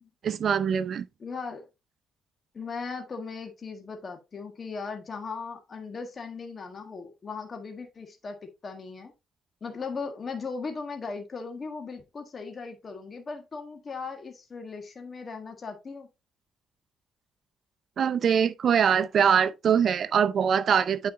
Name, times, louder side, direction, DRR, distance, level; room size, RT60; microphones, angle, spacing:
voice 1, 0.2-1.0 18.0-21.1, right 7 dB, 55° right, 0.7 m, -23 dB
voice 2, 1.2-1.6 2.5-8.4 8.6-9.1 9.6-16.1, left 4 dB, 40° left, 1.5 m, -38 dB
9.1 x 4.8 x 2.6 m
cardioid pair, 90°, 0 cm